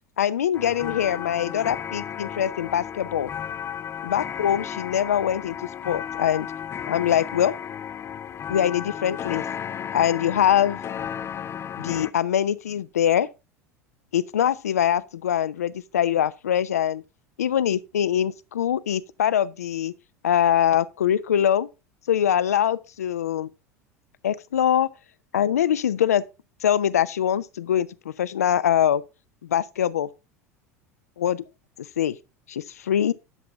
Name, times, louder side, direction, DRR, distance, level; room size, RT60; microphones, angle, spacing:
voice 1, 0.2-3.3 4.0-5.6 5.8-6.5 6.9-7.5 8.5-9.4 9.9-10.8 11.8-13.3 14.1-17.0 17.4-19.9 20.2-21.7 22.1-23.5 24.2-24.9 25.3-26.2 26.6-29.0 29.5-30.1 31.2-31.4 32.0-32.2 32.5-33.1, left 10 dB, 75° left, 0.6 m, -23 dB
sound 1, 0.5-12.1, left 8 dB, 30° left, 0.7 m, -34 dB
10.5 x 7.1 x 3.5 m
figure-of-eight pair, 75°, 8 cm